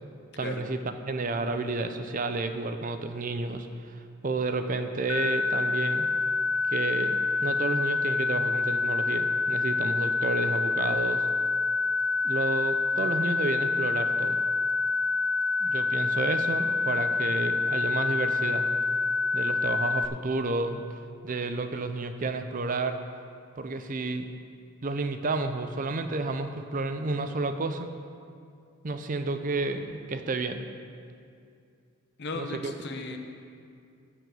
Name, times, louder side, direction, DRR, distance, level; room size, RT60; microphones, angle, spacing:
voice 1, 0.4-0.8 1.1-6.1 6.7-11.3 12.2-14.4 15.6-18.7 19.3-21.0 21.2-23.0 23.6-24.3 24.8-27.9 28.8-30.6 32.3-32.7, right 3 dB, 40° right, 8 dB, 0.5 m, -31 dB
sound 1, 5.1-20.1, left 3 dB, 85° left, 0.6 m, -27 dB
voice 2, 32.2-33.2, left 2 dB, 50° left, 4 dB, 0.9 m, -35 dB
13.5 x 4.8 x 7.7 m, 2.4 s
head